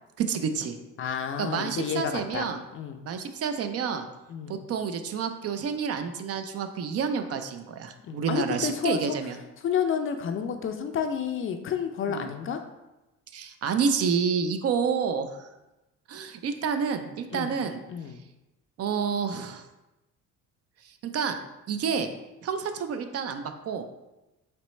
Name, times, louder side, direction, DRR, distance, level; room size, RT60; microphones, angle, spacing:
voice 1, 0.2-0.8 1.4-2.6 3.0-4.1 4.5-9.4 12.1-12.3 13.3-15.5 16.1-17.8 18.8-19.6 20.8-21.4 21.7-22.1 22.4-23.8, right 6 dB, 50° right, 8 dB, 0.4 m, -29 dB
voice 2, 1.0-3.0 4.3-4.6 8.0-9.2 9.6-12.6 17.3-17.5 17.9-18.2, left 7 dB, 40° left, 7 dB, 0.4 m, -30 dB
4.3 x 3.1 x 3.1 m, 1.0 s
cardioid pair, 95°, 33 cm